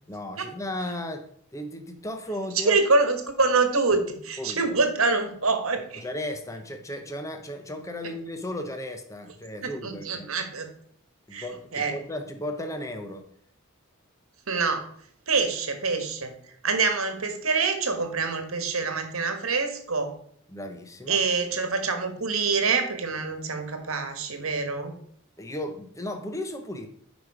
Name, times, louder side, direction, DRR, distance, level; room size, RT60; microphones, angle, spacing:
voice 1, 0.1-2.8 4.4-4.7 6.0-10.3 11.3-13.2 20.5-21.2 25.4-26.9, left 1 dB, 15° left, 6 dB, 0.8 m, -35 dB
voice 2, 2.5-6.0 9.6-10.7 11.3-11.5 11.7-11.9 14.5-14.9 15.3-16.3 16.6-20.1 21.1-25.0, right 4 dB, 75° right, 6 dB, 1.5 m, -25 dB
8.6 x 5.2 x 4.9 m, 0.62 s
head